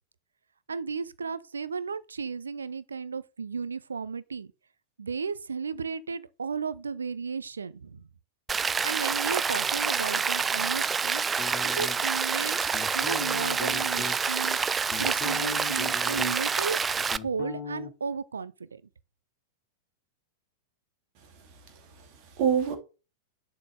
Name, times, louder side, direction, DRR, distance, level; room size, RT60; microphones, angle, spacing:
voice 1, 0.7-4.5 5.0-8.1 8.8-11.2 11.6-14.6 15.0-16.8 17.2-18.8, right 5 dB, 75° right, 0.6 m, -34 dB
Rain, 8.5-17.2, right 5 dB, 15° right, 0.3 m, -27 dB
sound 1, 11.4-12.2 12.7-14.2 14.6-16.6 16.8-17.9, left 6 dB, 30° left, 2.2 m, -39 dB
voice 2, 21.2-22.7, right 7 dB, 40° right, 2.6 m, -29 dB
7.5 x 4.3 x 5.5 m
figure-of-eight pair, 95°, 0 cm